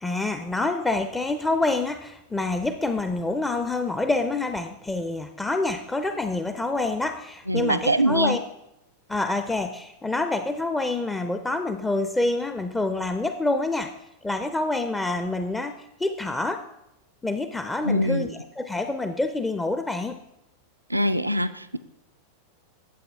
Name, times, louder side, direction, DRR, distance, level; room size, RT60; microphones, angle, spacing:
voice 1, 0.0-8.4 9.1-13.9 14.2-16.6 17.2-20.2, left 2 dB, 10° left, 8 dB, 0.5 m, -27 dB
voice 2, 7.5-8.4 17.8-18.3 20.9-21.8, equal, 85° right, 11 dB, 0.4 m, -23 dB
12.0 x 7.9 x 3.5 m, 0.88 s
figure-of-eight pair, 90°, 0 cm